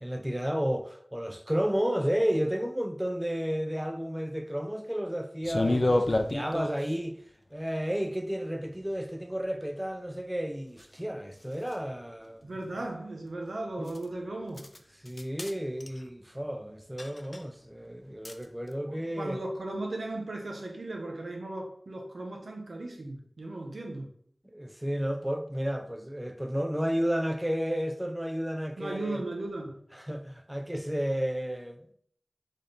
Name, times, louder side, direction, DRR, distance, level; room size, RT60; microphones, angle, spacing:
voice 1, 0.0-7.2 7.5-12.5 13.8-14.0 15.0-19.4 24.4-29.2 29.9-31.9, equal, 10° right, 0.4 m, -32 dB
sound 1, 5.4-6.9 10.8-10.9 11.7-11.8 13.9-14.0 14.6-14.8 15.1-15.5 15.8-16.0 17.0-17.4 18.2-18.4, left 2 dB, 55° left, 0.4 m, -28 dB
voice 2, 12.4-14.6 18.8-24.1 28.8-29.8, right 2 dB, 85° right, 1.0 m, -37 dB
3.9 x 3.4 x 3.9 m
wide cardioid pair, 55°, 0 cm